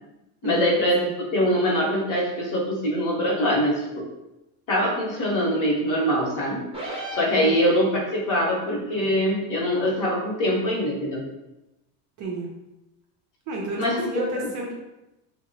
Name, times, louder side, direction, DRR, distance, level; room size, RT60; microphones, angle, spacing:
voice 1, 0.4-1.0 1.3-4.0 4.7-6.7 7.1-11.3 13.8-14.5, equal, 40° left, -3 dB, 0.9 m, -23 dB
sound 1, 6.7-8.1, right 1 dB, 10° right, 0.7 m, -35 dB
voice 2, 12.2-12.5 13.5-14.7, right 2 dB, 40° right, -2 dB, 0.5 m, -32 dB
2.7 x 2.0 x 2.7 m, 0.95 s
supercardioid pair, 115°, 48 cm